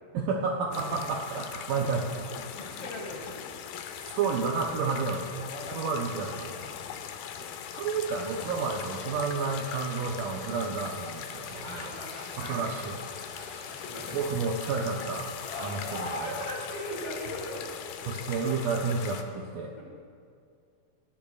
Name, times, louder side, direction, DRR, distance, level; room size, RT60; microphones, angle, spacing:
voice 1, 0.1-2.3 4.0-5.3 5.7-6.6 7.7-11.9 12.4-13.0 14.1-15.3 15.6-16.4 18.1-19.7, right 4 dB, 75° right, -1 dB, 2.0 m, -31 dB
sound 1, 0.7-19.2, left 8 dB, 80° left, 2.6 m, -40 dB
voice 2, 2.4-3.5 5.3-5.9 6.4-6.7 11.6-12.9 13.3-14.2 15.4-17.6 19.7-19.8, left 1 dB, 40° left, -3 dB, 2.4 m, -39 dB
sound 2, 7.9-16.4, left 2 dB, 65° left, 0.9 m, -51 dB
29.5 x 10.0 x 2.4 m, 2.3 s
omnidirectional pair, 4.6 m